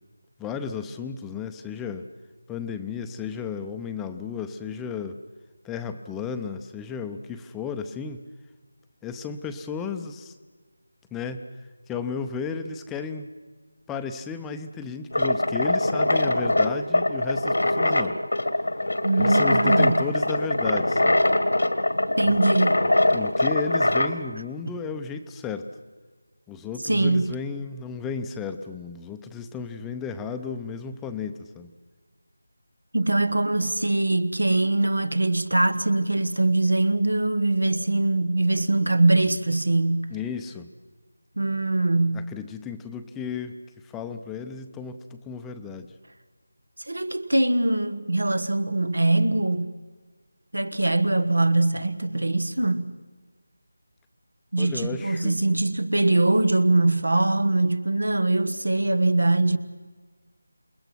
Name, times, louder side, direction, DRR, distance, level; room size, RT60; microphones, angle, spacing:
voice 1, 0.4-2.1 2.5-5.2 5.6-8.2 9.0-10.3 11.1-11.4 11.9-13.3 13.9-18.2 19.1-21.3 22.2-22.4 22.8-25.7 26.5-31.7 40.1-40.7 42.1-43.6 43.8-45.9 54.6-55.4, left 6 dB, 5° left, 0.6 m, -34 dB
sound 1, 15.1-24.2, left 1 dB, 80° left, 1.7 m, -22 dB
voice 2, 19.0-20.0 22.2-22.8 26.8-27.3 32.9-40.1 41.4-42.3 46.9-49.7 50.5-52.8 54.5-59.6, right 2 dB, 85° right, 1.4 m, -22 dB
28.0 x 21.5 x 6.2 m
figure-of-eight pair, 165°, 0 cm